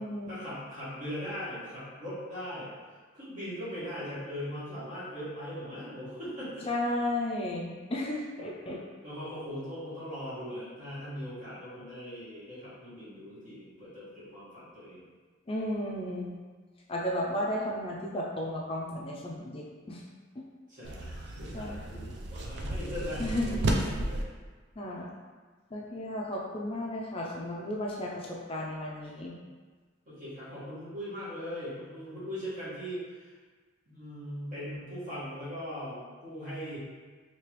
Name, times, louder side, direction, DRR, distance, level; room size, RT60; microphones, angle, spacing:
voice 1, 0.3-2.7 3.1-6.7 9.0-15.1 20.7-24.2 30.1-33.3 33.9-36.8, equal, 40° right, -11 dB, 1.4 m, -40 dB
voice 2, 6.7-8.8 15.5-16.4 16.9-20.1 21.5-21.8 23.2-23.6 24.8-25.1 25.7-29.4, left 1 dB, 30° left, -2 dB, 0.3 m, -34 dB
sound 1, 20.8-24.2, right 1 dB, 60° right, 0.4 m, -33 dB
3.1 x 2.8 x 3.0 m, 1.4 s
head